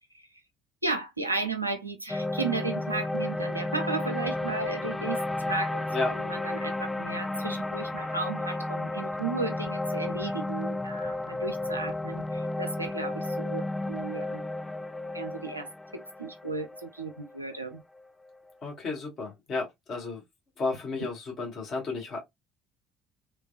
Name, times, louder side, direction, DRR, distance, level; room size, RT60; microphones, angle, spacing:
voice 1, 0.8-5.2 5.4-14.5 15.1-17.8, right 3 dB, 90° right, 0.5 m, -34 dB
sound 1, 2.1-18.4, left 2 dB, 15° left, 0.3 m, -33 dB
voice 2, 18.6-20.2 20.6-22.2, left 3 dB, 45° left, 1.4 m, -32 dB
3.2 x 2.3 x 2.3 m
figure-of-eight pair, 55°, 0 cm